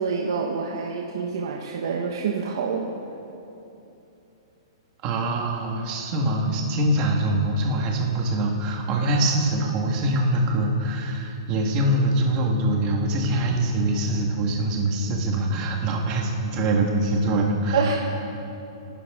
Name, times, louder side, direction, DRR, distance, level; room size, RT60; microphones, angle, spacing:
voice 1, 0.0-2.9 17.7-18.0, right 5 dB, 50° right, 0 dB, 1.3 m, -27 dB
voice 2, 5.0-17.8, right 1 dB, 20° right, 0 dB, 1.6 m, -24 dB
28.5 x 12.5 x 3.7 m, 2.8 s
hypercardioid pair, 180°, 3 cm